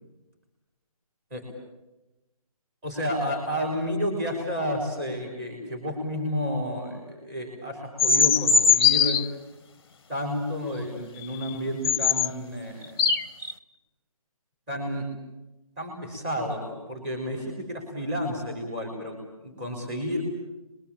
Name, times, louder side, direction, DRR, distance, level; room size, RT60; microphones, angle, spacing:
voice 1, 2.8-9.2 10.1-13.0 14.7-15.1 15.8-20.2, equal, 15° right, 3 dB, 4.5 m, -31 dB
sound 1, 8.0-9.3 11.4-11.5 11.8-12.3 12.8-13.5, left 6 dB, 40° left, 0.9 m, -20 dB
28.5 x 22.5 x 8.8 m, 0.97 s
hypercardioid pair, 175°, 19 cm